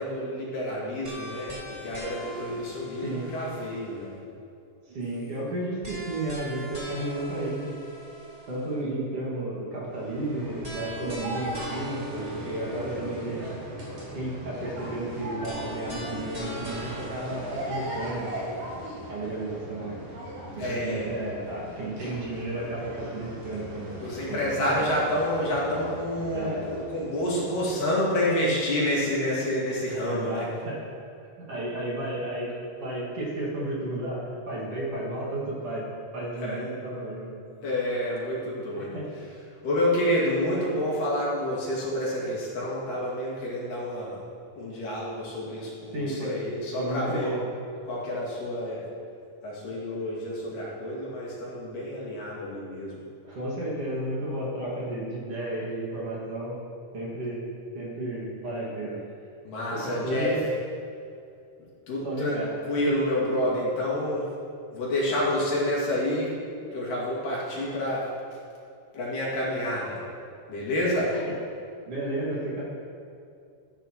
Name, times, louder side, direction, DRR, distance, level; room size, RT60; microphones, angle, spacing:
voice 1, 0.0-4.2 20.6-21.1 24.0-30.5 36.3-36.6 37.6-39.0 39.6-44.2 44.6-47.3 47.9-48.9 49.4-53.0 59.4-60.4 61.9-64.3 64.7-66.3 66.7-68.1 68.9-70.1 70.5-71.2, left 1 dB, 80° left, -5 dB, 3.9 m, -28 dB
sound 1, 1.0-4.2 5.8-8.8 10.6-13.8 15.4-18.9, equal, 20° right, 1.2 m, -42 dB
voice 2, 4.9-7.7 8.5-13.5 14.1-18.4 19.1-20.0 20.5-23.9 24.3-25.1 26.3-26.6 30.0-30.8 31.4-32.5 32.8-35.9 36.1-37.3 38.8-39.1 45.9-46.4 46.8-47.4 53.2-56.6 56.9-57.5 57.8-59.0 59.7-60.4 62.0-62.5 71.1-71.3 71.9-72.6, right 1 dB, 50° right, -5 dB, 2.7 m, -32 dB
sound 2, 9.8-28.3, equal, 70° right, 4.6 m, -39 dB
14.5 x 9.7 x 3.0 m, 2.4 s
omnidirectional pair, 3.8 m